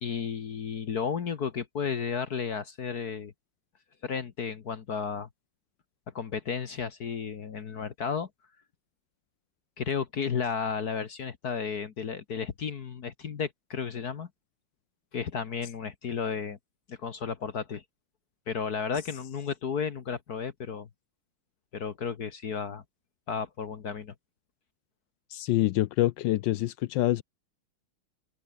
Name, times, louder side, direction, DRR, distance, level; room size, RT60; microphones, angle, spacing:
voice 1, 0.0-3.3 4.0-5.3 6.1-8.3 9.8-14.3 15.1-16.6 16.9-17.8 18.5-20.9 21.7-22.8 23.3-24.1, left 6 dB, 50° left, 1.6 m, -33 dB
voice 2, 25.3-27.2, left 15 dB, 75° left, 1.1 m, -26 dB
open air
omnidirectional pair, 2.4 m